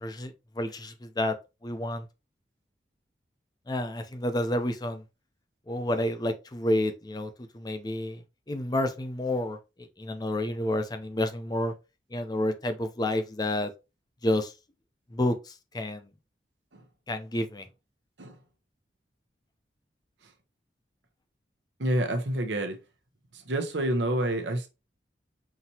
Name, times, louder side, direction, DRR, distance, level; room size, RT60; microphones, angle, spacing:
voice 1, 0.0-1.3 1.6-2.0 3.7-5.0 5.7-7.3 7.5-8.2 8.5-9.6 10.0-11.7 12.1-13.7 14.2-14.5 15.1-15.4 15.7-16.1 17.1-17.6, left 1 dB, 25° left, 0.5 m, -29 dB
voice 2, 21.8-22.8 23.3-24.7, right 1 dB, 90° right, 0.9 m, -28 dB
5.8 x 2.8 x 2.8 m
head